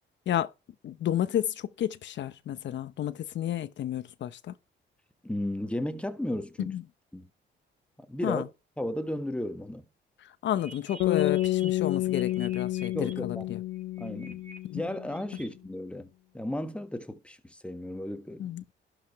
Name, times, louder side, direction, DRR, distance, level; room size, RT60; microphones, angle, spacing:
voice 1, 0.8-4.5 6.6-6.8 8.2-8.4 10.4-13.6 14.7-14.8 18.4-18.7, left 11 dB, 65° left, 0.9 m, -31 dB
voice 2, 5.2-6.7 7.1-7.3 8.1-8.5 8.8-9.9 12.9-13.4 14.0-14.4 14.7-18.5, left 1 dB, 5° left, 1.5 m, -34 dB
sound 1, 10.5-13.1 13.7-14.6 14.9-15.5, right 3 dB, 40° right, 4.4 m, -48 dB
sound 2, 11.0-15.2, left 16 dB, 85° left, 0.4 m, -30 dB
12.0 x 5.1 x 4.7 m
cardioid pair, 90°, 20 cm